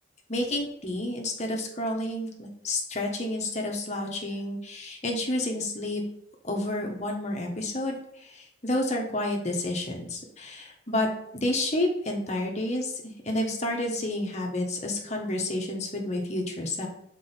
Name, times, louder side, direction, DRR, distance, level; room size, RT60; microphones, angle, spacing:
voice 1, 0.3-6.0 6.4-11.1 11.3-16.9, left 1 dB, 35° left, 0 dB, 1.2 m, -30 dB
6.3 x 4.4 x 4.4 m, 0.74 s
head